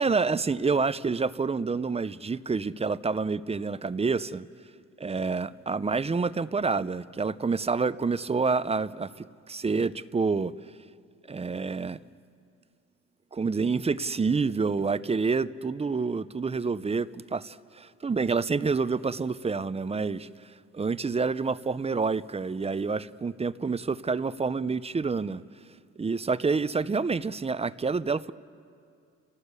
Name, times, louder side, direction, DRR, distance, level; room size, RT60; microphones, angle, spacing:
voice 1, 0.0-4.5 5.0-10.5 11.3-12.0 13.3-20.3 20.7-25.4 26.0-28.3, right 4 dB, 20° right, 0.6 m, -28 dB
30.0 x 18.0 x 8.3 m
cardioid pair, 90°, 30 cm